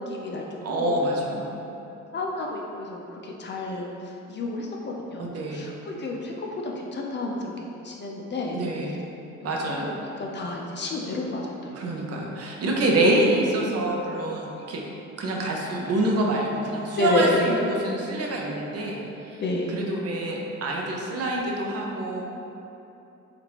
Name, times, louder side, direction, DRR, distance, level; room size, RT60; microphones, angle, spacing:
voice 1, 0.0-1.0 2.1-3.9 4.3-8.6 9.4-11.8 17.0-17.4 19.4-19.8, left 2 dB, 40° left, -1 dB, 0.4 m, -30 dB
voice 2, 0.6-1.6 5.2-5.7 8.5-9.0 9.4-10.0 11.7-14.8 15.2-19.4 19.7-22.2, right 1 dB, 55° right, -2 dB, 0.6 m, -26 dB
3.2 x 2.5 x 2.9 m, 2.9 s
cardioid pair, 90°, 30 cm